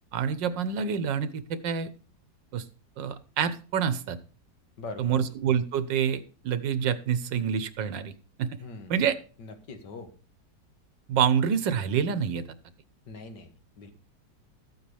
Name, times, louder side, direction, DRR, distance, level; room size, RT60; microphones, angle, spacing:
voice 1, 0.1-1.9 2.5-2.6 3.0-4.2 5.0-8.1 8.4-8.5 8.9-9.1 11.1-12.4, right 7 dB, 90° right, 14 dB, 1.6 m, -27 dB
voice 2, 4.8-5.3 8.6-9.0 9.4-10.1 13.1-13.9, left 3 dB, 70° left, 7 dB, 2.2 m, -42 dB
13.5 x 8.5 x 3.4 m, 0.37 s
omnidirectional pair, 1.9 m